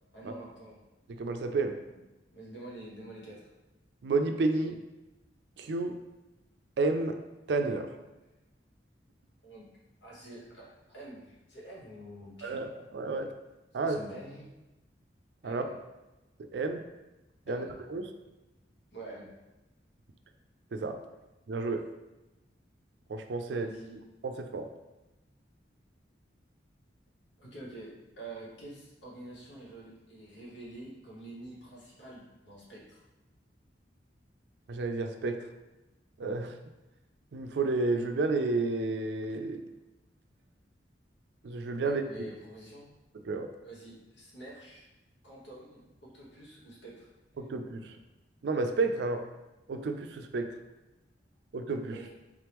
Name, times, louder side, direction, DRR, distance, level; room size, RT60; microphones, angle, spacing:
voice 1, 0.1-0.8 1.8-2.0 2.3-3.5 9.4-9.7 10.0-12.6 13.8-14.5 15.4-15.7 17.5-17.7 18.9-19.3 23.5-24.0 27.4-33.0 41.8-42.9 43.6-44.9 45.2-47.1 51.9-52.1, right 2 dB, 90° left, -5 dB, 1.3 m, -47 dB
voice 2, 1.1-1.8 4.0-4.8 5.6-5.9 6.8-7.2 7.5-7.9 12.4-13.3 13.7-14.0 15.4-15.6 16.5-16.8 17.5-18.1 20.7-21.0 21.5-21.8 23.1-23.7 24.2-24.7 34.7-35.5 36.2-36.5 37.3-39.7 41.4-42.0 43.3-43.5 47.4-48.0 48.4-49.2 49.7-50.5 51.5-51.9, right 3 dB, 65° right, 6 dB, 0.4 m, -31 dB
3.6 x 3.4 x 3.0 m, 1.0 s
head